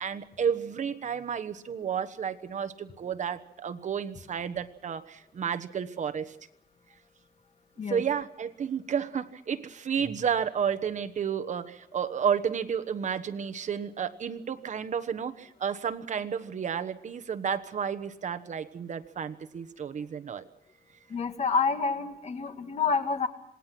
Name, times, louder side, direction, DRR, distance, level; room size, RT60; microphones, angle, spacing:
voice 1, 0.0-6.4 7.9-20.4, right 7 dB, 50° right, 10 dB, 1.2 m, -31 dB
voice 2, 21.1-23.3, left 5 dB, 40° left, 7 dB, 2.1 m, -28 dB
27.0 x 20.0 x 6.1 m, 0.76 s
wide cardioid pair, 145°, 16 cm